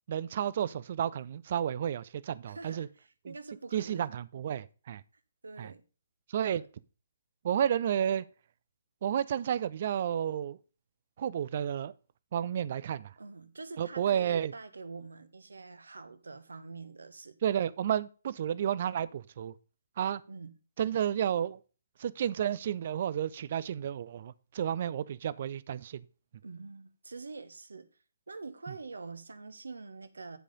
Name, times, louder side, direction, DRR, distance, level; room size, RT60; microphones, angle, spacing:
voice 1, 0.1-2.9 3.3-3.4 3.7-5.0 5.6-5.7 6.3-6.6 7.4-8.2 9.0-10.6 11.2-11.9 12.3-13.1 13.8-14.5 17.4-19.5 20.0-20.2 20.8-21.6 22.0-26.0, right 9 dB, 40° right, 0.5 m, -31 dB
voice 2, 2.5-4.1 5.4-5.8 6.5-6.7 13.2-17.4 20.3-20.5 26.4-27.9 28.3-30.4, right 3 dB, 65° right, 1.1 m, -45 dB
10.0 x 4.9 x 5.2 m
figure-of-eight pair, 130°, 0 cm